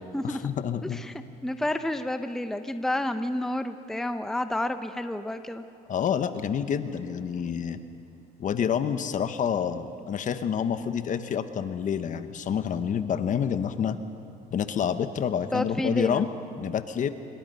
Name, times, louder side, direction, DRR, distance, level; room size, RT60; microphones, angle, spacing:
voice 1, 0.2-1.0 5.9-7.8 8.4-14.0 14.5-16.3 16.6-17.1, left 8 dB, 50° left, 10 dB, 1.1 m, -28 dB
voice 2, 0.9-5.6 15.5-16.2, left 1 dB, 5° left, 9 dB, 0.7 m, -30 dB
26.0 x 22.0 x 5.6 m, 2.6 s
cardioid pair, 110°, 17 cm